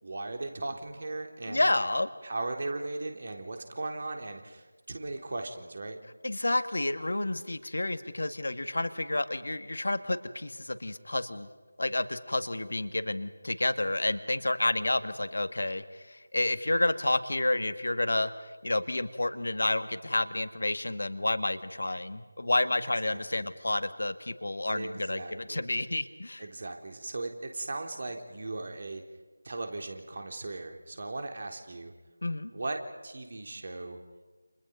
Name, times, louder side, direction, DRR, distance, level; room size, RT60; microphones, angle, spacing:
voice 1, 0.0-1.7 2.2-6.0 23.0-23.5 24.7-25.7 26.4-29.0 29.4-31.9 32.5-34.0, right 2 dB, 45° right, 4 dB, 3.8 m, -37 dB
voice 2, 1.5-2.1 6.2-11.5 11.8-18.3 18.6-26.4 32.2-32.5, left 2 dB, 60° left, 10 dB, 1.9 m, -30 dB
30.0 x 28.5 x 5.4 m, 1.3 s
figure-of-eight pair, 165°, 0 cm